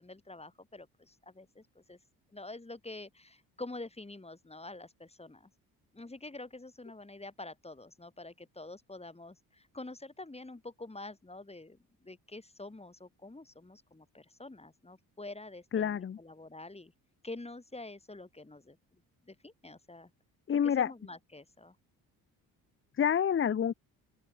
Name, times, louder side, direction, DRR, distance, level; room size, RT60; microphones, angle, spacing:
voice 1, 0.0-2.0 2.3-5.5 5.9-11.8 12.0-16.9 17.2-20.1 20.5-21.8, left 2 dB, 15° left, 4.5 m, -47 dB
voice 2, 15.7-16.2 20.5-20.9 23.0-23.7, left 8 dB, 30° left, 0.7 m, -28 dB
open air
supercardioid pair, 65°, 39 cm